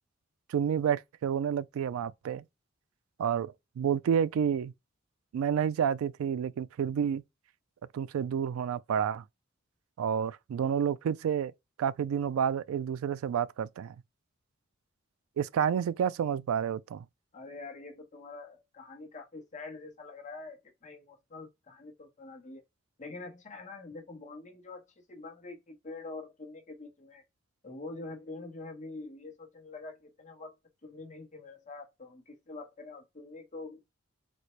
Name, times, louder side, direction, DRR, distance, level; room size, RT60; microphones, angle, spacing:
voice 1, 0.5-2.4 3.2-4.7 5.3-7.2 7.9-9.2 10.0-11.5 11.8-14.0 15.4-17.0, right 8 dB, 85° right, 0.3 m, -29 dB
voice 2, 17.3-22.6 23.0-27.2 27.6-30.5 30.8-33.9, left 3 dB, 35° left, 1.0 m, -45 dB
4.2 x 2.1 x 3.0 m
head